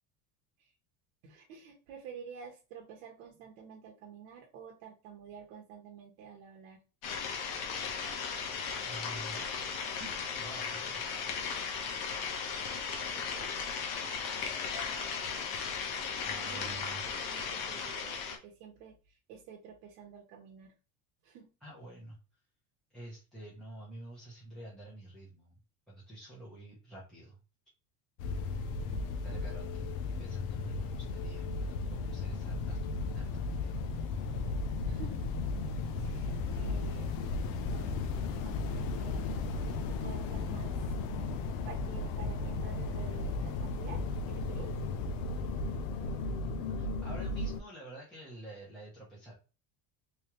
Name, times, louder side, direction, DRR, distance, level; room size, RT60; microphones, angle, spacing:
voice 1, 1.2-6.8 13.1-13.6 16.4-20.7 21.2-21.5 28.9-29.4 34.8-35.4 36.0-37.1 37.7-38.0 38.3-40.9 41.6-44.0 44.3-44.8, right 7 dB, 80° right, 0 dB, 1.0 m, -50 dB
sound 1, 7.0-18.4, left 6 dB, 70° left, 1.1 m, -36 dB
voice 2, 8.8-9.5 10.0-11.3 16.2-17.1 21.6-22.2 22.9-25.6 25.9-27.4 29.2-33.8 46.8-49.3, right 1 dB, ahead, -7 dB, 0.7 m, -49 dB
sound 2, 28.2-47.6, left 3 dB, 85° left, 0.7 m, -35 dB
3.5 x 3.1 x 3.0 m, 0.33 s
cardioid pair, 175°, 42 cm